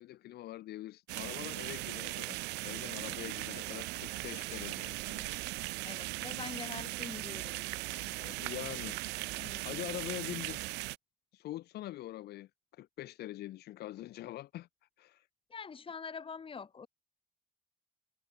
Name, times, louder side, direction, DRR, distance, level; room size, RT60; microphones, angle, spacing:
voice 1, 0.0-5.3 8.2-9.0 9.3-9.4 9.6-10.6 11.3-14.7 15.0-15.3, left 15 dB, 70° left, 1.7 m, -44 dB
sound 1, 1.1-11.0, right 22 dB, 85° right, 0.5 m, -39 dB
voice 2, 5.8-8.4 9.4-9.7 15.5-16.9, left 6 dB, 30° left, 3.9 m, -45 dB
cardioid pair, 110°, 17 cm